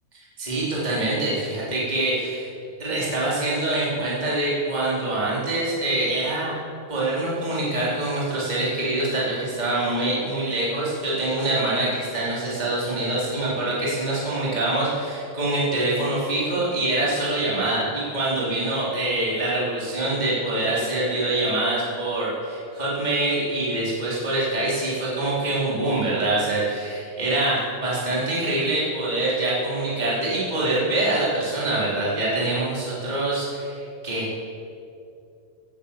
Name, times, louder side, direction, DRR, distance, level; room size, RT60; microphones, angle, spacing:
voice 1, 0.4-2.5 2.8-6.5 6.9-34.4, right 2 dB, 10° right, -7 dB, 3.7 m, -25 dB
18.0 x 10.0 x 7.5 m, 2.5 s
omnidirectional pair, 4.4 m